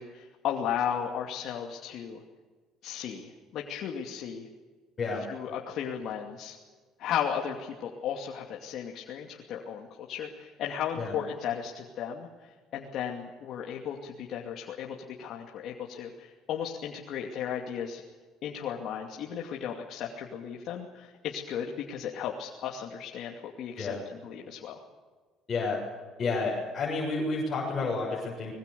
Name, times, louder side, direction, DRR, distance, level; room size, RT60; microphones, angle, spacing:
voice 1, 0.0-2.2 2.8-4.5 5.3-6.5 7.0-12.3 12.7-18.0 18.4-24.8, left 8 dB, 60° left, 0 dB, 2.6 m, -35 dB
voice 2, 25.5-25.8 26.2-28.5, left 3 dB, 25° left, -4 dB, 7.2 m, -30 dB
25.5 x 21.5 x 7.0 m, 1.4 s
cardioid pair, 135°, 0 cm